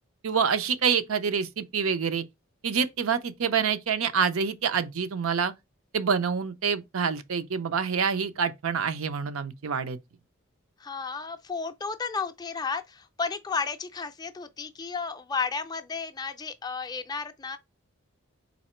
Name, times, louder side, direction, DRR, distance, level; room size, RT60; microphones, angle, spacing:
voice 1, 0.2-2.2 2.6-5.5 5.9-10.0, right 6 dB, 85° right, 0.5 m, -27 dB
voice 2, 10.8-17.6, left 5 dB, 20° left, 0.3 m, -33 dB
4.1 x 2.8 x 4.3 m
head